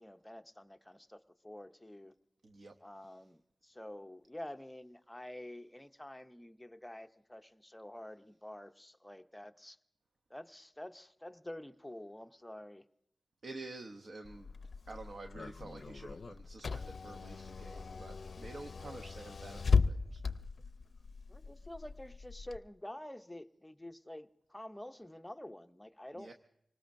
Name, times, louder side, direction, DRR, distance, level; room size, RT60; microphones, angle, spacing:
voice 1, 0.0-2.1 2.8-9.8 10.3-12.8 21.3-26.3, left 1 dB, 10° left, 9 dB, 0.6 m, -48 dB
voice 2, 2.4-2.7 13.4-14.5 14.9-20.2 26.1-26.3, right 2 dB, 65° right, 5 dB, 0.8 m, -49 dB
Car / Engine, 14.2-22.6, left 5 dB, 60° left, 0.5 m, -37 dB
26.5 x 19.0 x 2.6 m, 0.78 s
wide cardioid pair, 70°, 0 cm